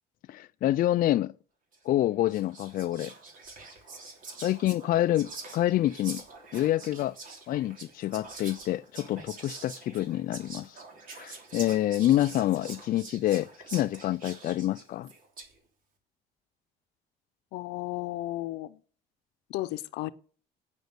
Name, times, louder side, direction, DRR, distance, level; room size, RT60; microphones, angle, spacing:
voice 1, 0.3-1.3 1.9-3.1 4.4-6.2 6.5-7.2 7.5-10.8 11.2-15.1, left 13 dB, 55° left, 0.4 m, -27 dB
Whispering, 1.7-1.9 2.3-15.6, right 3 dB, 55° right, 3.2 m, -45 dB
voice 2, 17.5-18.8 19.5-20.1, left 17 dB, 85° left, 0.7 m, -34 dB
9.1 x 6.6 x 8.0 m
cardioid pair, 110°, 17 cm